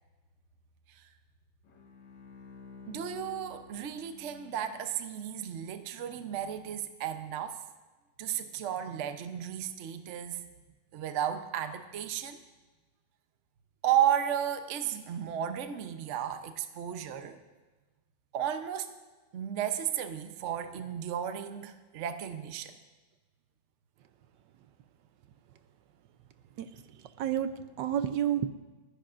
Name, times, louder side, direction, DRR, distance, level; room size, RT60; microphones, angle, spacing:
Bowed string instrument, 1.6-5.2, left 5 dB, 80° left, 2.1 m, -51 dB
voice 1, 2.9-7.6 8.2-10.4 10.9-12.4 13.8-17.4 18.3-18.9 19.3-22.7, right 10 dB, 55° right, 8 dB, 0.9 m, -33 dB
voice 2, 26.6-28.5, right 10 dB, 75° right, 10 dB, 1.2 m, -31 dB
30.0 x 10.5 x 2.5 m, 1.3 s
omnidirectional pair, 2.0 m